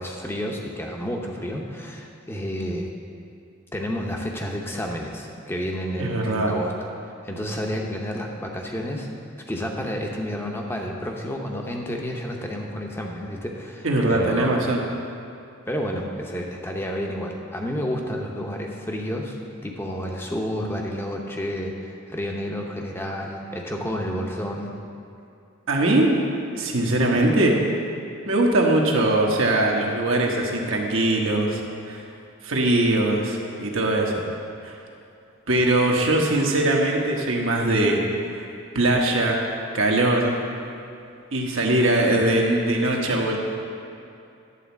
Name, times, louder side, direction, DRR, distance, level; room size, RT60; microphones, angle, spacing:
voice 1, 0.0-2.9 3.7-6.7 7.2-9.1 9.5-14.7 15.7-19.4 19.6-24.7, equal, 10° left, 0 dB, 0.7 m, -30 dB
voice 2, 6.0-6.5 13.8-14.8 25.7-26.2 26.5-27.6 28.3-32.0 32.4-34.2 34.6-34.8 35.5-38.0 38.3-38.4 38.7-39.4 39.7-40.3 41.3-43.4, right 1 dB, 70° right, -1 dB, 1.2 m, -21 dB
11.0 x 4.3 x 7.1 m, 2.7 s
head